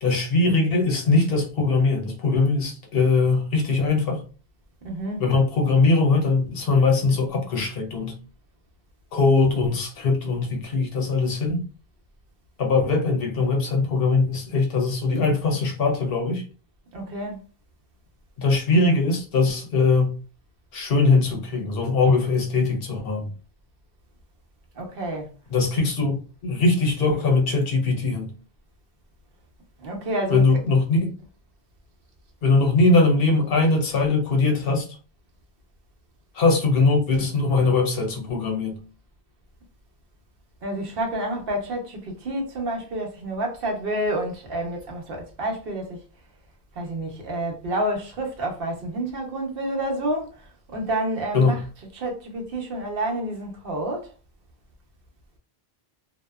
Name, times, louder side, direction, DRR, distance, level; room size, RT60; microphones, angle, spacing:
voice 1, 0.0-4.2 5.2-8.2 9.1-11.7 12.6-16.4 18.4-20.2 20.7-23.3 25.5-28.4 30.3-31.1 32.4-34.9 36.3-38.8 51.3-51.6, left 3 dB, 70° left, 0.8 m, -21 dB
voice 2, 4.8-5.2 16.9-17.4 24.8-25.3 29.8-30.4 40.6-46.0 46.8-50.3 50.7-51.6 52.0-54.1, right 1 dB, 65° right, 0.9 m, -29 dB
2.7 x 2.1 x 2.2 m
omnidirectional pair, 1.0 m